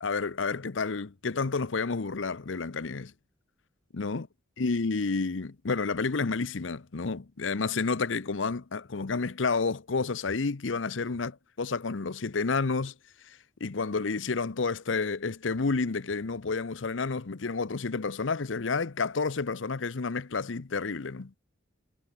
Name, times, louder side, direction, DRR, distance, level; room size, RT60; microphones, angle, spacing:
voice 1, 0.0-3.1 3.9-4.3 4.6-12.9 13.3-21.4, left 4 dB, 80° left, 0.8 m, -30 dB
head